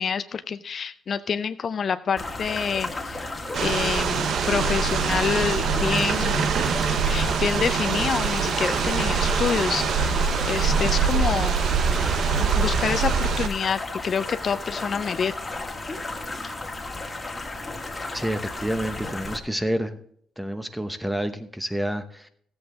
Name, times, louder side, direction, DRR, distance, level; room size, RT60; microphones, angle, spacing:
voice 1, 0.0-3.2 3.6-6.5 7.1-11.6 12.4-15.3, left 6 dB, 50° left, 12 dB, 0.4 m, -27 dB
sound 1, 2.2-19.4, left 2 dB, 15° left, 1.7 m, -34 dB
sound 2, 3.5-13.5, right 6 dB, 65° right, 0.7 m, -24 dB
voice 2, 18.1-20.0 20.4-22.3, right 1 dB, 5° right, 10 dB, 0.9 m, -28 dB
14.0 x 7.9 x 3.8 m, 0.65 s
cardioid pair, 90°, 0 cm